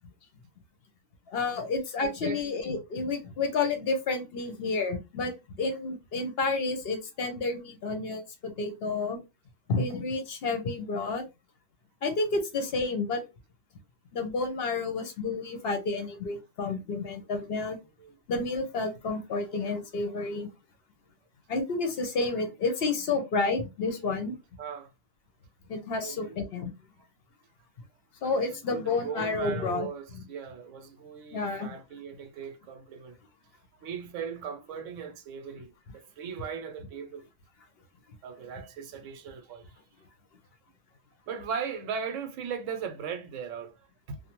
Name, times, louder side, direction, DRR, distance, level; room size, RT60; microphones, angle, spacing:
voice 1, 1.3-9.2 9.7-11.2 12.0-13.2 14.1-17.8 18.3-20.5 21.5-24.3 25.7-26.7 28.2-29.9 30.1-30.2 31.3-31.7, left 3 dB, 60° left, 0.7 m, -30 dB
voice 2, 2.0-2.4 18.0-18.2 24.6-24.9 26.0-26.4 28.5-33.2 33.8-37.3 38.2-39.7 41.3-44.2, right 6 dB, 75° right, 0.9 m, -38 dB
2.5 x 2.1 x 2.8 m
omnidirectional pair, 1.4 m